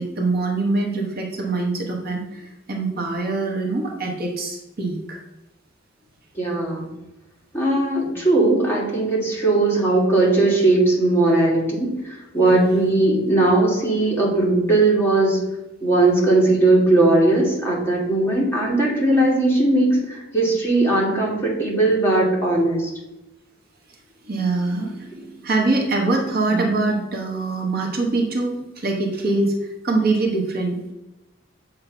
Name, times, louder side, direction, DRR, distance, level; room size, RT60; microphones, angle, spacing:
voice 1, 0.0-5.2 12.5-12.8 24.3-29.5 29.8-30.9, right 3 dB, 50° right, 1 dB, 1.0 m, -24 dB
voice 2, 6.3-6.9 7.5-15.4 15.8-22.9, right 2 dB, 10° left, -4 dB, 1.6 m, -19 dB
7.0 x 2.8 x 5.5 m, 0.98 s
head